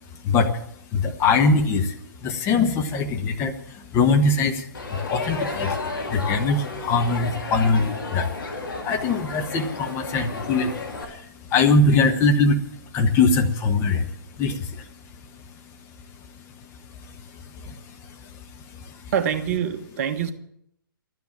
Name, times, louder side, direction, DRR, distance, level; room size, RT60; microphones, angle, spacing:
voice 1, 0.2-0.6 0.9-8.4 8.8-12.6 12.9-14.9 16.3-16.7 17.0-19.1, left 3 dB, 20° left, 4 dB, 1.2 m, -23 dB
Crowd, 4.7-11.1, left 3 dB, 65° left, 3.2 m, -32 dB
voice 2, 19.1-20.3, right 8 dB, 40° right, 8 dB, 1.3 m, -25 dB
12.5 x 9.5 x 8.8 m, 0.72 s
figure-of-eight pair, 130°, 12 cm